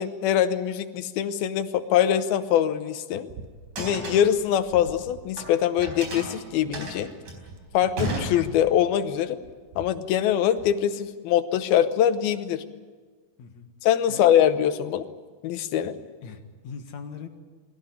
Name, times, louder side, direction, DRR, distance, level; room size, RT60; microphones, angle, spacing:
voice 1, 0.0-3.3 3.8-7.1 7.7-9.4 9.8-12.7 13.8-15.1 15.4-15.9, left 10 dB, 85° left, 10 dB, 2.9 m, -23 dB
sound 1, 3.3-3.5 3.8-4.3 4.7-4.8 5.1-6.0 6.6-6.9 7.1-7.2 7.4-9.1 9.4-10.8, right 5 dB, 70° right, 2.7 m, -46 dB
sound 2, 3.6-5.5 5.8-8.9, right 1 dB, 55° right, 5.7 m, -34 dB
voice 2, 13.4-13.7 14.1-14.3 16.0-17.3, left 6 dB, 60° left, 5 dB, 2.7 m, -41 dB
22.0 x 17.0 x 9.9 m, 1.4 s
omnidirectional pair, 4.2 m